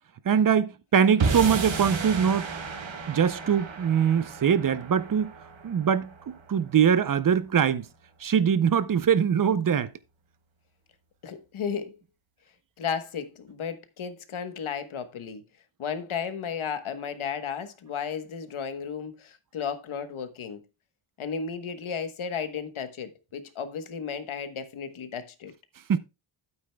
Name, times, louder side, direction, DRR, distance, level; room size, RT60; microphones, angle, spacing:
voice 1, 0.3-2.5 3.1-5.3 5.6-7.8 8.2-9.9 25.9-26.0, right 7 dB, 45° right, 0.6 m, -23 dB
sound 1, 1.2-7.6, right 5 dB, 65° right, 1.6 m, -33 dB
voice 2, 11.2-12.0 12.8-15.4 15.8-20.6 21.2-25.5, left 6 dB, 75° left, 1.2 m, -34 dB
12.0 x 8.8 x 2.2 m
wide cardioid pair, 160°, 49 cm